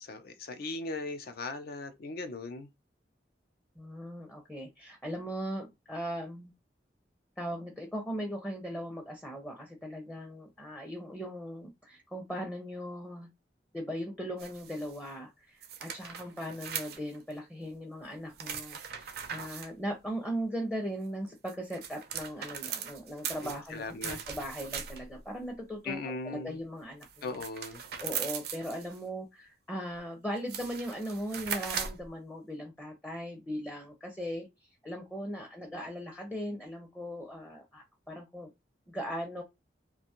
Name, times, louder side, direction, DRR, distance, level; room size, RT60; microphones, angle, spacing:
voice 1, 0.0-2.7 23.4-24.2 25.8-26.6 27.2-27.8, left 3 dB, 60° left, 0.5 m, -38 dB
voice 2, 3.8-6.5 7.4-13.3 13.7-26.0 26.2-27.4 28.0-34.5 34.8-38.5 38.9-39.4, equal, 10° left, 0.6 m, -38 dB
sound 1, 14.4-15.0 15.6-17.3 18.3-19.7 21.3-25.2 27.0-29.0 30.0-30.1 30.4-32.1, right 8 dB, 60° right, 0.5 m, -39 dB
2.5 x 2.2 x 2.8 m
head